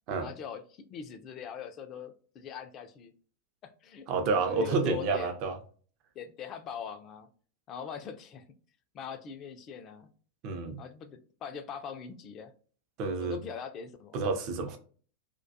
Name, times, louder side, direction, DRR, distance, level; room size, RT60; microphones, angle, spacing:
voice 1, 0.2-3.1 3.6-4.1 4.4-5.3 6.2-7.3 7.7-8.4 8.9-10.1 10.8-12.5 13.2-14.2, left 7 dB, 30° left, 0.3 m, -42 dB
voice 2, 4.1-5.6 10.4-10.8 13.0-13.4 14.1-14.8, right 4 dB, 40° right, 0.5 m, -29 dB
2.2 x 2.2 x 2.6 m
figure-of-eight pair, 90°, 0 cm